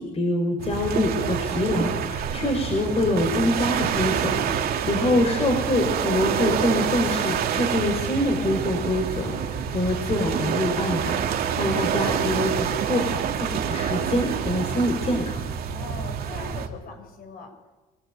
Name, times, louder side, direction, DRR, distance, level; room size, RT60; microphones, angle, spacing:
voice 1, 0.0-15.4, left 1 dB, 35° left, 3 dB, 5.3 m, -25 dB
sound 1, 0.6-16.7, right 8 dB, 65° right, 2.7 m, -27 dB
voice 2, 4.7-5.2 15.7-17.5, left 5 dB, 60° left, 4 dB, 7.7 m, -40 dB
25.5 x 19.0 x 9.4 m, 1.1 s
cardioid pair, 110°, 17 cm